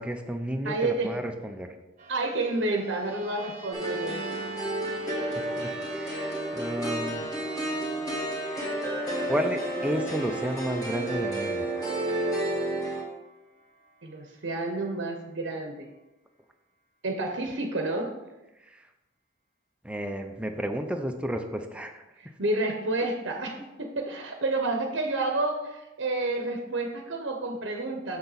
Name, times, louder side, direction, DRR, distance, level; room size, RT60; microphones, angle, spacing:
voice 1, 0.0-1.7 5.0-5.1 5.6-7.3 8.4-8.7 9.3-11.7 18.7-18.8 19.8-22.0, equal, 5° right, 5 dB, 0.5 m, -32 dB
voice 2, 0.6-1.1 2.1-4.2 14.0-15.9 17.0-18.1 22.2-28.2, right 2 dB, 65° right, 3 dB, 0.8 m, -30 dB
sound 1, 2.0-15.2, right 2 dB, 35° right, 1.0 m, -48 dB
sound 2, 3.7-13.0, right 1 dB, 15° left, 1.8 m, -31 dB
6.8 x 6.8 x 4.0 m, 0.98 s
head